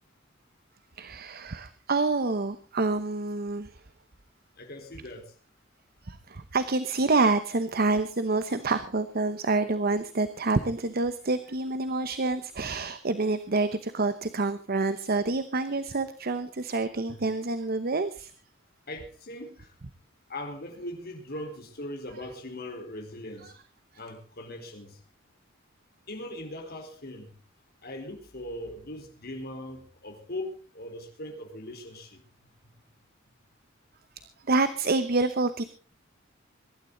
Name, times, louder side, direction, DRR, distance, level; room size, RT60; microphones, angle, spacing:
voice 1, 1.0-3.8 6.0-18.3 23.4-23.5 34.5-35.6, right 3 dB, 50° right, 12 dB, 0.9 m, -27 dB
voice 2, 4.6-5.3 17.1-17.2 18.9-19.7 20.3-23.5 24.0-25.0 26.1-27.3 27.8-32.2, left 1 dB, 50° left, 3 dB, 4.1 m, -40 dB
23.0 x 12.5 x 3.9 m, 0.35 s
head